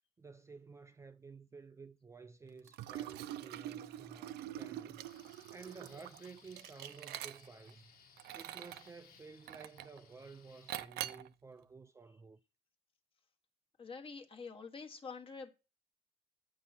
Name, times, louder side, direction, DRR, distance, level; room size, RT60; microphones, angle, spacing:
voice 1, 0.2-7.9 8.3-12.4, right 4 dB, 15° right, 0.4 m, -53 dB
Liquid, 2.7-7.7 8.2-8.9 9.5-10.0 10.7-11.3, right 13 dB, 75° right, 0.5 m, -44 dB
sound 1, 5.0-10.7, left 6 dB, 65° left, 1.5 m, -63 dB
voice 2, 13.8-15.5, left 5 dB, 30° left, 1.3 m, -47 dB
8.5 x 5.4 x 4.3 m
cardioid pair, 110°, 17 cm